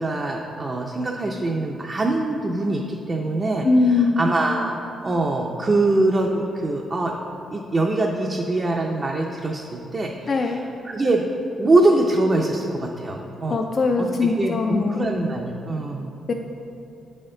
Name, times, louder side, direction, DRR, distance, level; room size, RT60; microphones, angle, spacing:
voice 1, 0.0-3.7 4.2-4.8 5.0-7.1 7.5-11.3 11.6-13.6 14.0-16.1, right 2 dB, 30° right, 0 dB, 0.4 m, -23 dB
voice 2, 3.6-4.3 10.3-10.6 13.5-15.1 16.3-16.4, left 3 dB, 40° left, 3 dB, 0.3 m, -21 dB
8.6 x 4.2 x 3.8 m, 2.7 s
cardioid pair, 115°, 0 cm